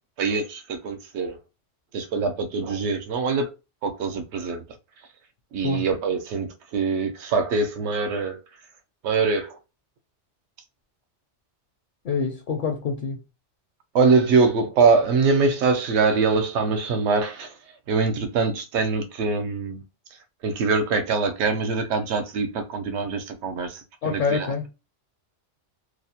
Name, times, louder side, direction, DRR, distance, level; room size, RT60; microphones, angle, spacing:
voice 1, 0.2-1.4 1.9-3.5 3.8-4.6 5.5-8.4 9.0-9.6 13.9-17.5 17.9-19.8 20.4-24.7, right 4 dB, 70° right, 0.9 m, -23 dB
voice 2, 12.0-13.2 24.0-24.7, left 5 dB, 60° left, 0.6 m, -26 dB
2.5 x 2.0 x 2.7 m
omnidirectional pair, 1.2 m